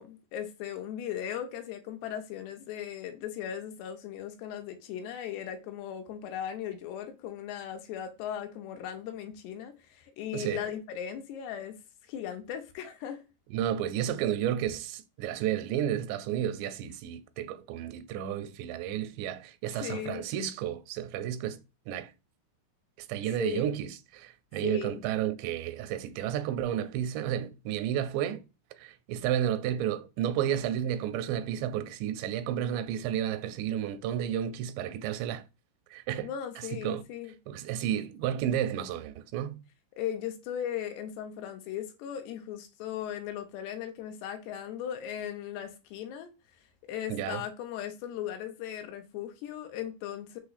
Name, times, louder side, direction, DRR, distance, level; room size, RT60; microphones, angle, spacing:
voice 1, 0.0-11.8 12.1-13.2 19.7-20.3 23.4-23.6 24.6-25.0 36.2-37.3 40.0-46.3 46.9-50.4, left 10 dB, 85° left, 2.6 m, -37 dB
voice 2, 10.3-10.7 13.5-21.6 21.9-22.1 23.0-28.4 28.8-35.4 35.9-36.3 36.6-37.0 37.5-39.6 47.1-47.4, right 10 dB, 85° right, 2.7 m, -32 dB
6.2 x 2.9 x 2.4 m
omnidirectional pair, 4.9 m